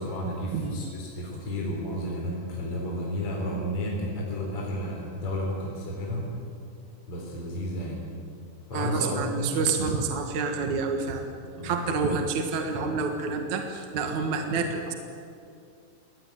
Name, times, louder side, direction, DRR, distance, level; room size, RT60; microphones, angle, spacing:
voice 1, 0.0-6.3 7.1-8.1 8.7-9.7 11.5-11.9, equal, 35° left, -2 dB, 4.7 m, -32 dB
voice 2, 8.7-11.3 11.6-14.9, right 4 dB, 55° right, 4 dB, 2.6 m, -28 dB
23.0 x 19.0 x 9.6 m, 2.4 s
omnidirectional pair, 4.3 m